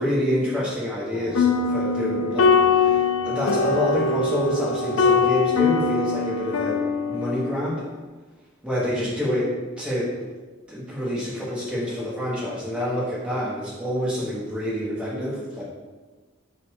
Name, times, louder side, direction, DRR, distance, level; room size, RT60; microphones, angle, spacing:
voice 1, 0.0-6.8 7.1-7.8 8.6-10.1 10.7-15.6, equal, 5° right, -7 dB, 1.2 m, -27 dB
sound 1, 1.1-7.7, left 5 dB, 80° left, 0.4 m, -22 dB
5.6 x 2.4 x 3.6 m, 1.3 s
head